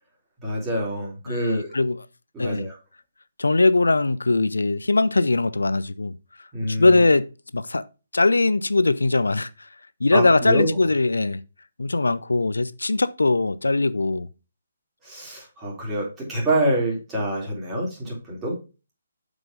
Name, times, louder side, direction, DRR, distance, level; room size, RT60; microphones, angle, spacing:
voice 1, 0.4-1.7 2.3-2.8 6.5-7.0 10.1-10.7 15.0-18.5, right 1 dB, 15° right, 3.4 m, -26 dB
voice 2, 1.3-2.0 2.4-2.7 3.4-6.1 6.6-7.8 8.1-9.5 10.0-11.4 11.8-14.3, left 3 dB, 75° left, 0.5 m, -21 dB
7.5 x 5.0 x 3.5 m
figure-of-eight pair, 140°, 0 cm